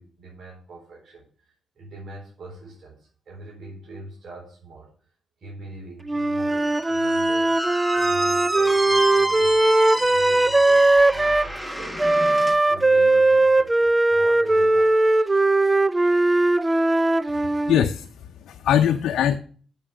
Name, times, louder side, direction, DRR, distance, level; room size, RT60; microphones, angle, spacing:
voice 1, 0.0-4.9 5.4-7.6 7.9-12.0 12.7-15.3, right 2 dB, 60° right, -3 dB, 4.1 m, -42 dB
Wind instrument woodwind instrument, 6.1-11.5 12.0-17.9, right 2 dB, 20° right, 0.5 m, -19 dB
Squeak, 6.5-12.6, right 1 dB, 5° right, 1.4 m, -28 dB
voice 2, 17.3-19.4, left 9 dB, 80° left, 6 dB, 0.6 m, -22 dB
7.7 x 7.2 x 6.3 m, 0.43 s
cardioid pair, 65°, 0 cm